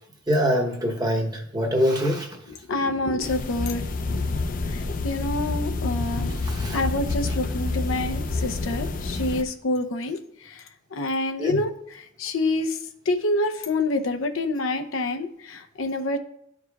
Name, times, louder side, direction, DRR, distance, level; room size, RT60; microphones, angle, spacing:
voice 1, 0.3-2.4 6.4-6.8 11.4-11.6, equal, 20° right, 1 dB, 0.9 m, -24 dB
voice 2, 2.7-3.8 4.7-6.4 6.7-16.2, left 2 dB, 90° left, 6 dB, 0.7 m, -27 dB
sound 1, 3.2-9.4, left 3 dB, 45° left, 0.5 m, -28 dB
12.0 x 4.9 x 2.3 m, 0.74 s
head